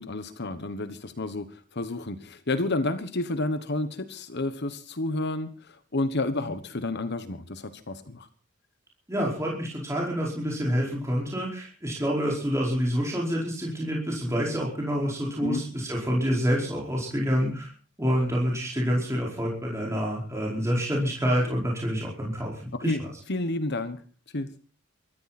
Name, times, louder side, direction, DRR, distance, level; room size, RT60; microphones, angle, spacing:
voice 1, 0.0-8.3 15.4-15.6 22.8-23.0 23.3-24.0 24.3-24.5, left 2 dB, 55° left, 11 dB, 1.3 m, -30 dB
voice 2, 9.1-17.7 18.0-23.1, equal, 15° right, -3 dB, 4.9 m, -27 dB
23.0 x 14.0 x 4.3 m, 0.40 s
head